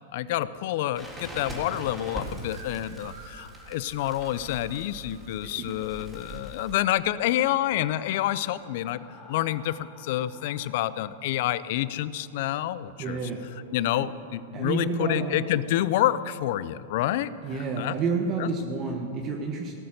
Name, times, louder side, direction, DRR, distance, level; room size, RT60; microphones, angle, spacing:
voice 1, 0.1-13.2 13.7-17.9 18.4-18.5, left 13 dB, 60° left, 17 dB, 0.5 m, -28 dB
Crackle, 1.0-6.7, right 1 dB, 10° right, 3.8 m, -41 dB
sound 1, 1.7-6.7, right 5 dB, 75° right, 1.9 m, -51 dB
sound 2, 5.6-14.5, left 3 dB, 25° left, 2.5 m, -55 dB
voice 2, 13.0-13.4 14.0-14.1 14.5-15.4 17.4-19.7, right 4 dB, 35° right, 2 dB, 1.4 m, -29 dB
18.0 x 6.9 x 6.6 m, 2.6 s
hypercardioid pair, 115°, 0 cm